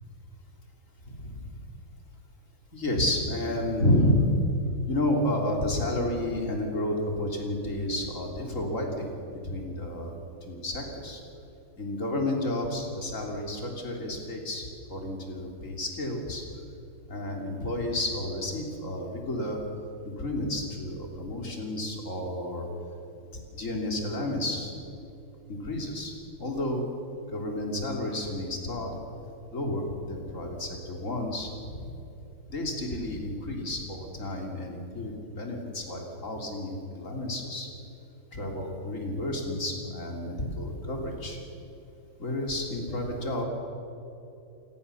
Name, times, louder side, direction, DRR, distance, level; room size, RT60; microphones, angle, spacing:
voice 1, 1.1-1.5 2.7-4.3 4.9-11.2 11.8-16.4 17.1-19.6 20.0-22.7 23.5-24.7 25.5-26.8 27.3-28.9 29.5-31.9 32.5-37.7 38.3-41.4 42.2-43.4, left 1 dB, 35° left, 1 dB, 3.7 m, -31 dB
29.0 x 17.0 x 7.1 m, 2.9 s
omnidirectional pair, 2.3 m